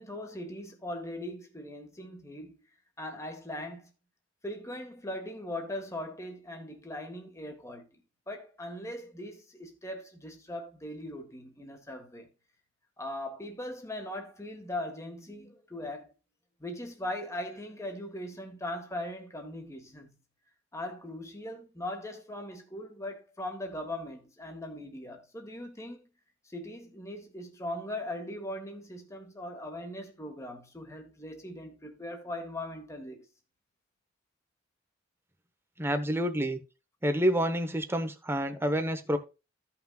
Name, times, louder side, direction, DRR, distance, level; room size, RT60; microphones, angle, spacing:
voice 1, 0.0-2.5 3.0-3.9 4.4-7.8 8.3-12.3 13.0-16.1 16.6-20.1 20.7-26.0 26.4-33.2, left 1 dB, 15° left, 1.5 m, -40 dB
voice 2, 35.8-36.6 37.0-39.2, equal, 10° right, 1.0 m, -28 dB
15.0 x 5.9 x 2.4 m
head